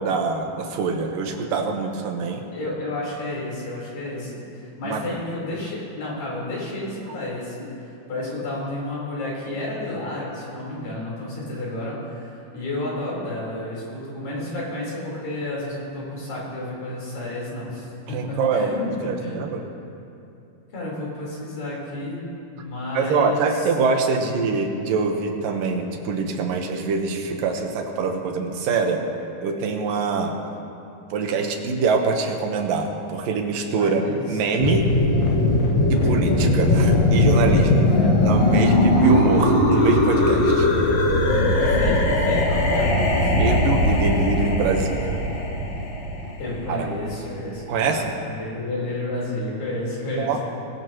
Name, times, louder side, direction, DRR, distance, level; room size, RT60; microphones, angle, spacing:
voice 1, 0.0-2.4 4.8-5.1 18.1-19.7 22.9-29.0 29.4-30.3 31.1-34.0 34.3-34.9 35.9-37.9 38.3-40.7 43.2-45.2 46.7-46.9 47.7-48.1 50.1-50.4, right 4 dB, 85° right, 3 dB, 2.9 m, -24 dB
voice 2, 2.5-7.7 8.1-19.4 20.7-22.2 22.5-23.7 24.2-24.5 33.8-34.2 38.0-38.2 39.0-39.1 41.6-43.5 46.4-50.4, left 1 dB, 75° left, -6 dB, 5.9 m, -31 dB
sound 1, 34.6-47.3, left 1 dB, 55° left, 2.8 m, -19 dB
20.5 x 19.0 x 3.1 m, 2.7 s
omnidirectional pair, 3.9 m